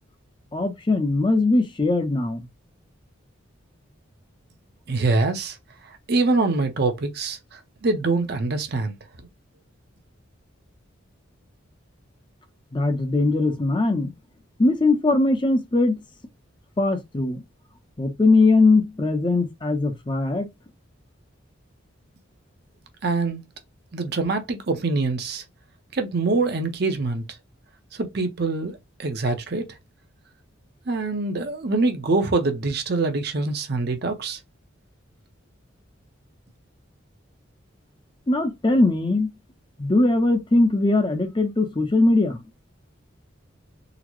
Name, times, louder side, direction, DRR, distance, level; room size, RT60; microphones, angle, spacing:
voice 1, 0.5-2.4 12.7-14.1 14.6-16.0 16.8-17.4 18.0-20.5 38.3-39.3 39.8-42.4, left 2 dB, 25° left, 0.5 m, -20 dB
voice 2, 4.9-5.6 5.8-8.9 23.0-23.4 23.9-25.4 25.9-27.2 27.9-29.6 30.9-34.4, right 3 dB, 50° right, 0.6 m, -24 dB
3.8 x 2.0 x 2.9 m
head